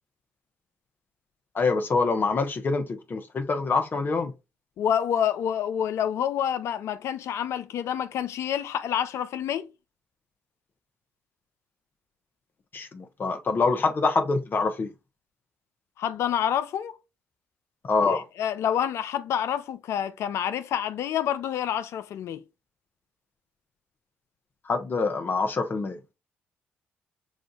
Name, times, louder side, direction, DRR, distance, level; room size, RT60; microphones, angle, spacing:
voice 1, 1.5-4.3 12.7-14.9 17.8-18.2 24.6-26.0, left 4 dB, 40° left, 1.0 m, -25 dB
voice 2, 4.8-9.7 16.0-17.0 18.1-22.4, left 9 dB, 65° left, 0.4 m, -28 dB
6.3 x 2.5 x 2.3 m
hypercardioid pair, 55°, 5 cm